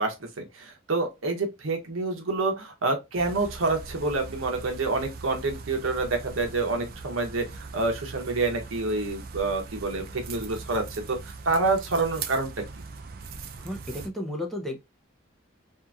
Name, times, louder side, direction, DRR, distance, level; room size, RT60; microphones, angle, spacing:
voice 1, 0.0-12.5, right 3 dB, 80° right, 0.8 m, -28 dB
sound 1, 3.1-14.1, right 4 dB, 45° right, 0.4 m, -41 dB
voice 2, 13.6-14.8, left 1 dB, ahead, 0.6 m, -33 dB
2.8 x 2.5 x 2.3 m
head